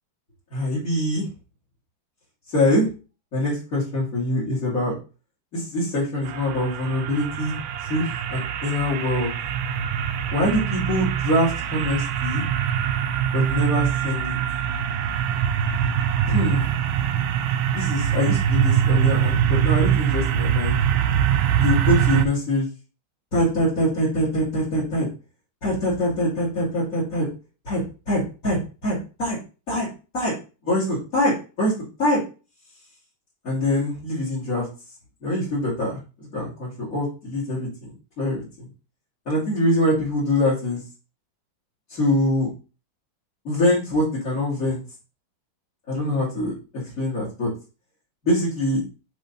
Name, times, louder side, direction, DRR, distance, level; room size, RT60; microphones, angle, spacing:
voice 1, 0.5-1.2 2.5-2.9 3.3-4.9 5.5-7.5 7.8-9.3 10.3-12.4 13.3-14.3 16.2-16.8 17.7-20.8 21.6-22.7 23.3-25.0 25.6-27.3 27.6-29.4 29.7-29.9 30.1-30.3 30.6-31.7 32.0-32.2 33.4-34.7 35.2-36.0 36.3-38.4 39.3-40.8 41.9-42.5 43.4-44.8 45.9-46.5 47.0-47.5 48.2-48.8, left 1 dB, 40° left, -8 dB, 2.8 m, -24 dB
sound 1, 6.2-22.3, right 9 dB, 80° right, 1.4 m, -23 dB
6.5 x 3.5 x 5.2 m, 0.34 s
omnidirectional pair, 2.2 m